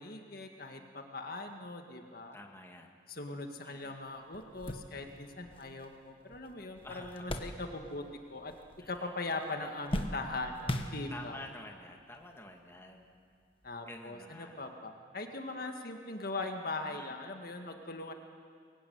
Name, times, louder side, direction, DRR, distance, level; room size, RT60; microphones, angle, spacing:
voice 1, 0.0-2.4 3.1-8.0 8.3-8.5 8.9-11.4 13.6-18.1, left 2 dB, 55° left, 4 dB, 1.8 m, -40 dB
voice 2, 2.3-2.9 3.6-4.0 6.8-7.4 8.8-9.1 11.1-13.1 13.8-14.6 16.9-17.1, left 1 dB, 15° left, 2 dB, 2.1 m, -49 dB
sound 1, 3.8-3.9 4.3-8.1 8.4-9.1 9.4-11.5 12.2-12.3 13.6-13.8, left 1 dB, 30° left, 1.5 m, -40 dB
24.0 x 22.0 x 9.5 m, 2.2 s
head